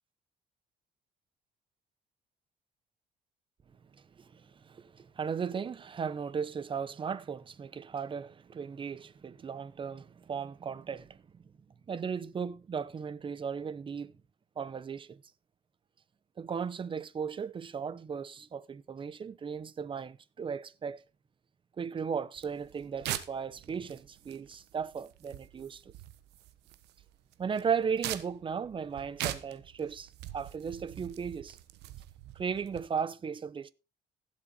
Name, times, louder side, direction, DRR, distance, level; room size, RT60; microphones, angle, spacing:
voice 1, 4.2-11.4 11.9-14.1 14.6-15.2 16.4-21.0 21.8-25.9 27.4-31.6 32.3-33.7, right 6 dB, 30° right, 0.8 m, -36 dB
sound 1, 22.4-32.8, right 13 dB, 85° right, 1.1 m, -43 dB
16.0 x 7.6 x 4.0 m
cardioid pair, 110°, 17 cm